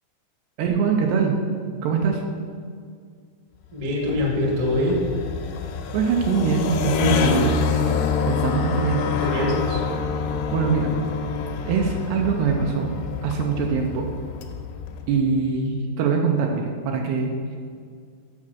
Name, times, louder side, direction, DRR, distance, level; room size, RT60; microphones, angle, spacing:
voice 1, 0.6-1.4 1.8-2.2 5.9-7.6 8.3-9.3 10.5-10.9 11.6-12.9 13.2-14.1 15.1-17.6, right 5 dB, 80° right, 1 dB, 2.6 m, -23 dB
voice 2, 3.7-5.0 9.1-9.8, left 1 dB, 60° right, -2 dB, 1.4 m, -24 dB
sound 1, 3.8-15.4, left 6 dB, 80° left, 2.5 m, -27 dB
7.3 x 6.3 x 6.2 m, 2.1 s
omnidirectional pair, 5.1 m